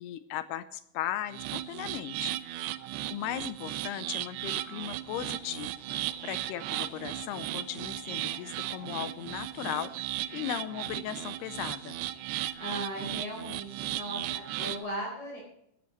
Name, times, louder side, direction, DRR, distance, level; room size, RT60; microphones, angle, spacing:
voice 1, 0.0-2.4 3.1-10.1 10.3-12.0, left 12 dB, 85° left, 12 dB, 2.4 m, -37 dB
sound 1, 1.3-14.9, right 14 dB, 80° right, 2.4 m, -36 dB
sound 2, 4.9-12.8, right 3 dB, 40° right, 4.8 m, -57 dB
voice 2, 12.6-15.4, right 1 dB, 40° left, -2 dB, 5.4 m, -37 dB
18.0 x 13.5 x 3.0 m, 0.74 s
omnidirectional pair, 5.3 m